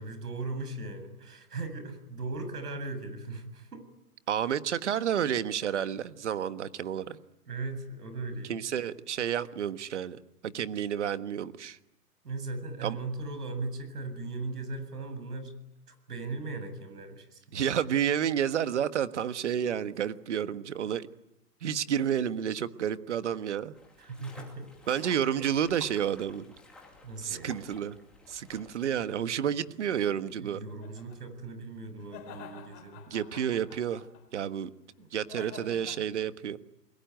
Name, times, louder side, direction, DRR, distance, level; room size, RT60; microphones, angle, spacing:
voice 1, 0.0-3.8 7.5-8.7 12.2-15.5 15.9-17.6 24.0-24.7 27.0-27.6 30.4-33.0 35.0-35.1, right 3 dB, 75° right, 9 dB, 7.7 m, -38 dB
voice 2, 4.3-7.2 8.5-11.8 12.8-13.0 17.5-21.1 21.6-23.7 24.9-26.5 27.2-28.0 28.3-30.6 33.1-34.0 34.3-34.7 35.1-36.6, right 9 dB, 50° right, 12 dB, 1.5 m, -30 dB
sound 1, 23.7-29.2, left 2 dB, ahead, 2.5 m, -52 dB
sound 2, 29.4-31.2 32.0-34.4 35.3-36.0, left 7 dB, 20° left, 4.0 m, -49 dB
29.0 x 22.0 x 9.3 m, 0.85 s
hypercardioid pair, 165°, 47 cm